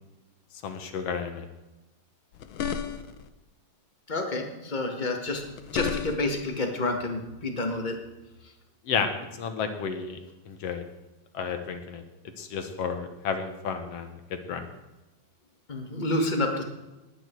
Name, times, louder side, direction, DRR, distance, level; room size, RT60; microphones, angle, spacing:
voice 1, 0.6-1.5 8.9-10.2 10.5-10.8 11.3-12.0 12.4-14.7, left 6 dB, 60° left, 7 dB, 2.2 m, -32 dB
sound 1, 2.3-3.3 5.3-6.4, left 7 dB, 90° left, 1.1 m, -33 dB
voice 2, 4.1-5.4 5.7-7.9 15.7-16.6, left 2 dB, 20° left, 3 dB, 1.3 m, -29 dB
20.0 x 9.1 x 4.6 m, 1.0 s
omnidirectional pair, 3.3 m